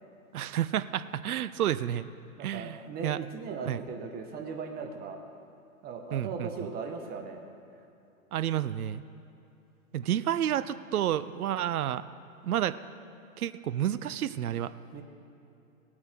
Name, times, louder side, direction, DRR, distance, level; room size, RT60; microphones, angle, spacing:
voice 1, 0.3-2.1 2.4-3.2 3.6-3.8 6.1-6.5 8.3-9.0 9.9-12.0 12.4-12.8 13.4-14.7, right 11 dB, 80° right, 15 dB, 0.6 m, -30 dB
voice 2, 2.4-5.2 5.8-7.4 7.7-7.8 14.9-15.0, right 5 dB, 20° right, 4 dB, 1.2 m, -38 dB
18.5 x 8.6 x 4.5 m, 2.8 s
hypercardioid pair, 120°, 44 cm